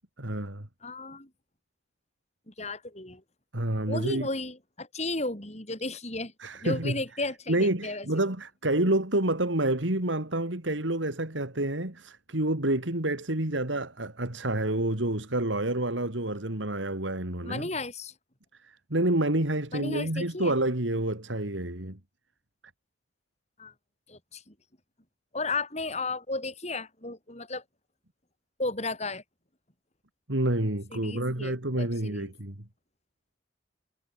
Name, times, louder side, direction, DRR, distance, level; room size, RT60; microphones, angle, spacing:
voice 1, 0.2-0.7 3.5-4.3 6.4-6.9 7.5-17.7 18.9-22.0 30.3-32.5, right 1 dB, 80° right, 3.2 m, -28 dB
voice 2, 0.8-1.3 2.5-3.2 3.9-8.3 17.4-18.1 19.7-20.5 23.6-23.7 24.1-24.5 25.3-27.6 28.6-29.2 30.9-32.3, left 2 dB, 35° left, 7.2 m, -34 dB
head